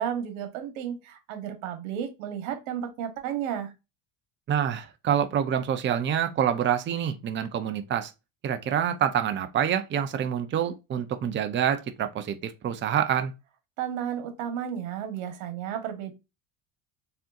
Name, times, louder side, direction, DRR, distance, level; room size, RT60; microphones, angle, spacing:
voice 1, 0.0-3.7 13.8-16.1, right 9 dB, 85° right, 1.4 m, -33 dB
voice 2, 4.5-8.1 8.4-13.3, right 9 dB, 30° right, 0.6 m, -27 dB
4.4 x 3.8 x 2.6 m
supercardioid pair, 110°, 39 cm